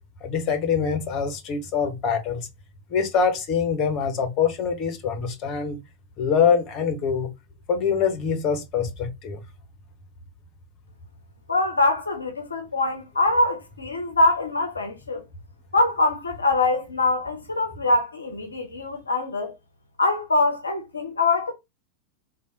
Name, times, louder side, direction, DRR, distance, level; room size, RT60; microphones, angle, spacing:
voice 1, 0.2-2.5 2.9-5.8 6.2-7.3 7.7-9.4, left 6 dB, 35° left, 0.7 m, -24 dB
voice 2, 11.5-15.2 15.7-19.5 20.0-21.5, left 2 dB, 75° left, 0.5 m, -23 dB
3.3 x 2.2 x 2.7 m
figure-of-eight pair, 90°, 0 cm